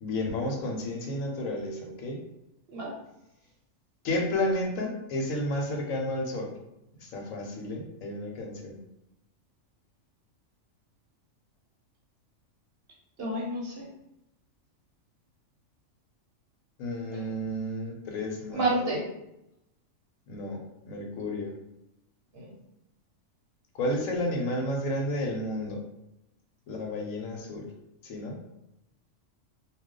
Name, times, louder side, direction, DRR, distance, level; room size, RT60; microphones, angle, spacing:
voice 1, 0.0-2.2 4.0-6.5 7.0-8.8 16.8-18.8 20.3-21.5 23.7-25.8 26.7-27.7 28.0-28.4, left 1 dB, 90° left, 1 dB, 1.1 m, -32 dB
voice 2, 13.2-13.9 17.1-17.2 18.5-19.0 22.3-22.5, right 2 dB, 55° right, -3 dB, 0.9 m, -29 dB
2.3 x 2.2 x 3.6 m, 0.87 s
omnidirectional pair, 1.4 m